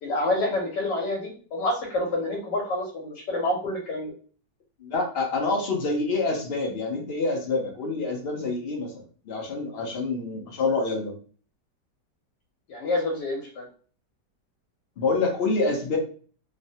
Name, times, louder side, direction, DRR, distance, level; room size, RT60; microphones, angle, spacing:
voice 1, 0.0-4.1 12.7-13.7, left 1 dB, 85° left, -1 dB, 1.4 m, -28 dB
voice 2, 4.8-11.1 15.0-16.0, left 3 dB, 65° left, 1 dB, 0.6 m, -27 dB
3.1 x 2.1 x 2.7 m, 0.42 s
omnidirectional pair, 1.8 m